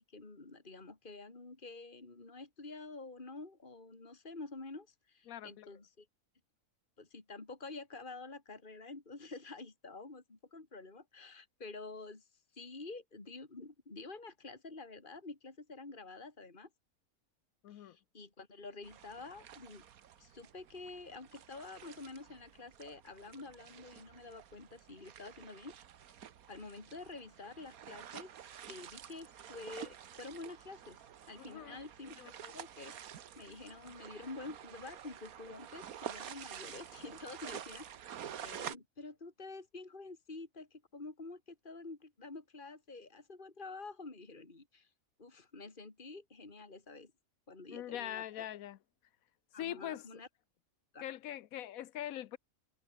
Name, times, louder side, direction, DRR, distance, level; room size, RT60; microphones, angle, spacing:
voice 1, 0.0-6.1 7.0-12.3 12.5-16.7 17.7-19.8 20.2-25.8 26.5-28.3 28.7-31.0 31.3-32.9 33.4-37.9 38.4-44.9 45.2-47.1 47.5-48.5 49.5-50.3 50.9-51.0, left 3 dB, 35° left, 3.0 m, -48 dB
voice 2, 5.3-5.7 17.6-18.0 31.4-31.8 32.2-32.3 47.7-48.8 49.6-50.1 51.0-52.4, left 12 dB, 80° left, 1.1 m, -42 dB
sound 1, 18.8-38.8, right 9 dB, 85° right, 1.5 m, -49 dB
omnidirectional pair, 1.5 m